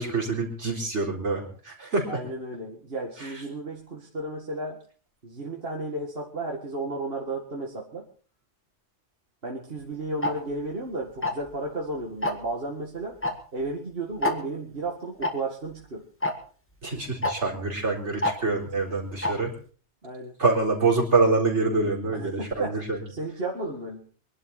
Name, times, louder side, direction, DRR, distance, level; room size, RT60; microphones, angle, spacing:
voice 1, 0.0-2.2 3.2-3.3 16.8-19.5 20.4-23.0, right 3 dB, 75° right, -1 dB, 4.5 m, -26 dB
voice 2, 2.1-4.8 5.2-8.1 9.4-13.2 13.5-16.1 20.0-20.4 22.1-22.8 23.1-24.0, right 2 dB, 55° right, -1 dB, 2.3 m, -33 dB
Tick-tock, 10.2-10.3 11.2-11.5 12.2-12.5 13.2-13.3 13.6-13.7 14.2-14.3 15.2-15.3 16.2-16.3 17.2-17.3 18.2-18.3 19.2-19.3, left 2 dB, 10° left, 2.0 m, -25 dB
24.5 x 11.5 x 4.2 m, 0.41 s
omnidirectional pair, 1.2 m